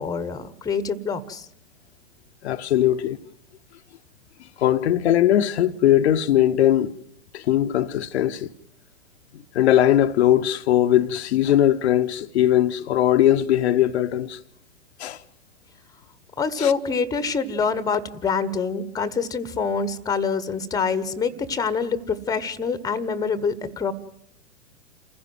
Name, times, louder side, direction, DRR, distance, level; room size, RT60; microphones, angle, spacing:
voice 1, 0.0-1.5 16.4-23.9, left 5 dB, 10° left, 1.1 m, -25 dB
voice 2, 2.4-3.2 4.6-6.9 7.3-8.5 9.5-14.4 15.0-15.2 16.6-16.7, left 12 dB, 55° left, 0.9 m, -20 dB
28.5 x 15.5 x 7.7 m
figure-of-eight pair, 105°, 40 cm